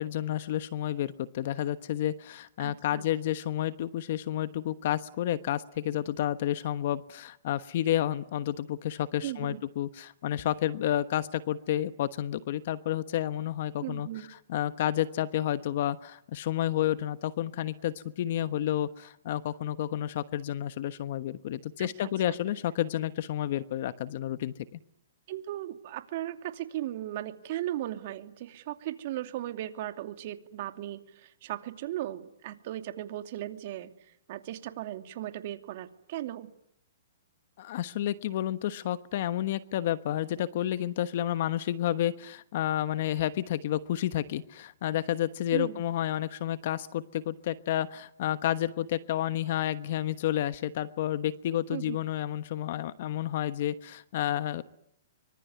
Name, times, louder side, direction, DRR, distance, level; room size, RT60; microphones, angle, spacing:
voice 1, 0.0-24.8 37.6-54.6, left 12 dB, 55° left, 13 dB, 1.2 m, -30 dB
voice 2, 2.6-3.1 9.2-9.6 13.8-14.3 21.8-22.4 25.3-33.9 34.3-36.5 45.5-45.8 51.7-52.0, right 13 dB, 50° right, 7 dB, 2.6 m, -37 dB
25.5 x 24.5 x 9.6 m, 0.75 s
hypercardioid pair, 145°, 0 cm